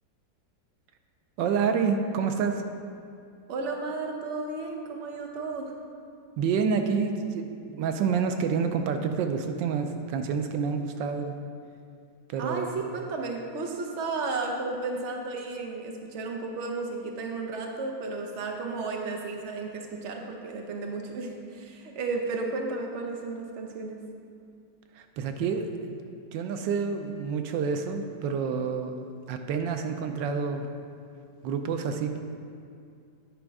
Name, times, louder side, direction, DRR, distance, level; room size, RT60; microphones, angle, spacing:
voice 1, 1.4-2.6 6.4-11.4 12.3-12.8 24.9-30.7 31.4-32.2, right 6 dB, 85° right, 6 dB, 1.3 m, -28 dB
voice 2, 3.5-5.7 12.4-24.0, right 3 dB, 50° right, 2 dB, 1.0 m, -33 dB
10.0 x 5.2 x 4.7 m, 2.4 s
omnidirectional pair, 1.9 m